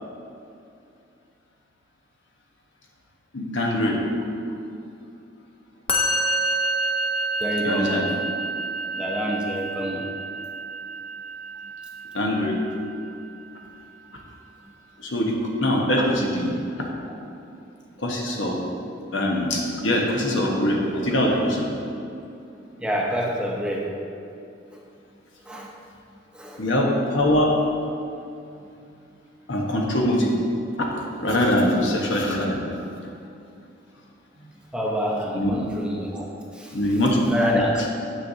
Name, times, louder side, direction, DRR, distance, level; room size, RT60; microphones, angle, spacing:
voice 1, 3.3-4.0 7.6-8.1 12.1-12.6 15.0-16.6 18.0-18.6 19.1-21.7 26.6-27.6 29.5-30.4 31.2-32.6 35.3-35.6 36.7-37.3, left 1 dB, 75° left, -1 dB, 1.1 m, -22 dB
Musical instrument, 5.9-13.2, right 2 dB, 30° left, 0.7 m, -28 dB
voice 2, 7.4-8.1 8.9-10.1 17.3-17.4 22.8-24.0 24.7-24.8 25.5-25.7 26.3-26.7 34.7-36.3 36.5-36.8 37.3-37.9, equal, 5° right, -2 dB, 0.7 m, -27 dB
9.1 x 6.5 x 2.7 m, 2.6 s
head